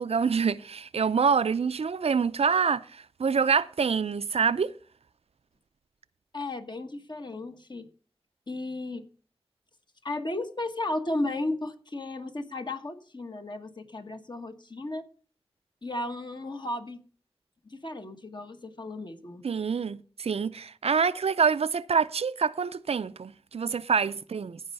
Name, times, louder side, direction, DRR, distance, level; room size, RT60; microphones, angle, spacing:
voice 1, 0.0-2.9 3.2-4.7 19.4-24.6, right 6 dB, 80° right, 0.5 m, -26 dB
voice 2, 6.3-7.9 8.5-9.1 10.0-15.0 15.8-17.0 17.6-19.5, left 2 dB, 45° left, 1.4 m, -34 dB
15.5 x 5.5 x 5.4 m
wide cardioid pair, 70°, 10 cm